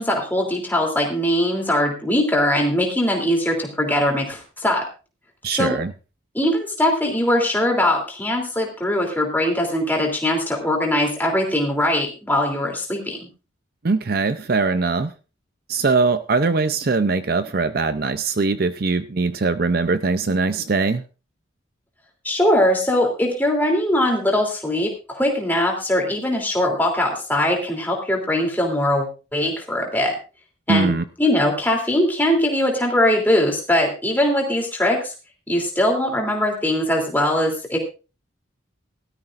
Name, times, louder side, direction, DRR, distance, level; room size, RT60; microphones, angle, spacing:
voice 1, 0.0-4.8 5.5-5.7 6.3-13.3 22.2-30.1 30.7-30.9 31.2-35.1 35.5-37.8, left 1 dB, 10° left, 0 dB, 3.0 m, -21 dB
voice 2, 5.4-5.9 13.8-15.1 15.7-21.0 30.7-31.0, right 4 dB, 45° right, 11 dB, 0.6 m, -21 dB
17.5 x 13.0 x 2.5 m, 0.32 s
head